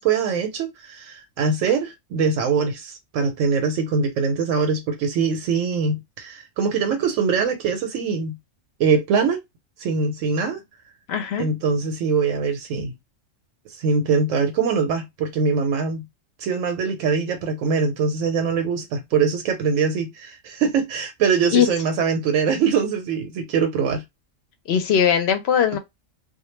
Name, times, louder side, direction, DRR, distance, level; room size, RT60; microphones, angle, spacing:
voice 1, 0.0-8.4 8.8-9.4 9.8-10.6 11.4-12.9 13.7-16.1 16.4-24.0, right 5 dB, 85° right, 1.0 m, -23 dB
voice 2, 11.1-11.5 21.5-21.7 24.7-25.8, left 8 dB, 65° left, 0.7 m, -19 dB
2.2 x 2.2 x 3.1 m
omnidirectional pair, 1.3 m